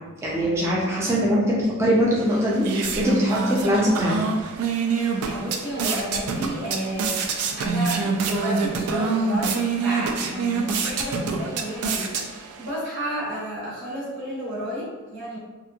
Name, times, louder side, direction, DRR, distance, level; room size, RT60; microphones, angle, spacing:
voice 1, 0.2-4.2, equal, 10° right, -5 dB, 0.3 m, -22 dB
sound 1, 2.2-12.7, right 4 dB, 85° right, 0.4 m, -26 dB
voice 2, 5.2-15.4, equal, 55° right, -10 dB, 1.1 m, -32 dB
2.9 x 2.4 x 2.3 m, 1.2 s
head